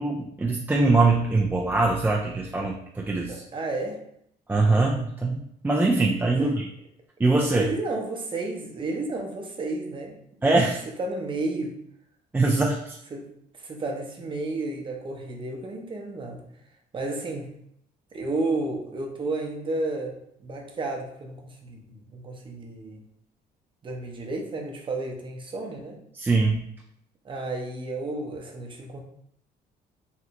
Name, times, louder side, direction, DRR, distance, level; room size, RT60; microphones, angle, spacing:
voice 1, 0.0-3.4 4.5-6.7 7.2-7.7 10.4-10.8 12.3-13.0 26.1-26.6, right 3 dB, 10° right, -2 dB, 0.3 m, -22 dB
voice 2, 3.3-4.0 6.4-6.6 7.5-10.1 11.0-11.8 13.1-13.3 13.5-16.4 16.9-17.6 18.1-23.0 23.8-26.0 27.2-29.0, right 2 dB, 30° right, 1 dB, 0.7 m, -32 dB
3.2 x 2.5 x 2.8 m, 0.72 s
cardioid pair, 110°, 17 cm